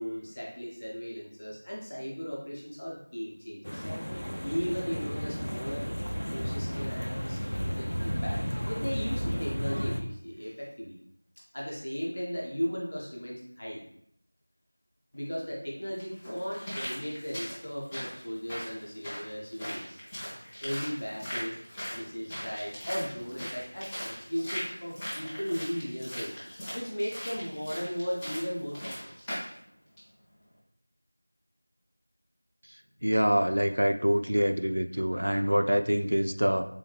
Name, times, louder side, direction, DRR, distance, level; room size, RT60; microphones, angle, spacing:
voice 1, 0.0-3.8 4.4-5.9 6.3-11.0 11.5-13.8 15.1-20.0 20.6-21.6 21.9-26.3 26.7-29.3, equal, 30° left, -4 dB, 0.7 m, -36 dB
sound 1, 3.6-10.0, equal, 85° left, 0.5 m, -33 dB
sound 2, 15.1-15.2 16.0-29.6 30.0-30.1, equal, 5° left, 0.3 m, -40 dB
voice 2, 33.0-36.6, equal, 75° right, 7 dB, 0.3 m, -25 dB
3.4 x 2.9 x 3.2 m, 0.71 s
figure-of-eight pair, 180°, 0 cm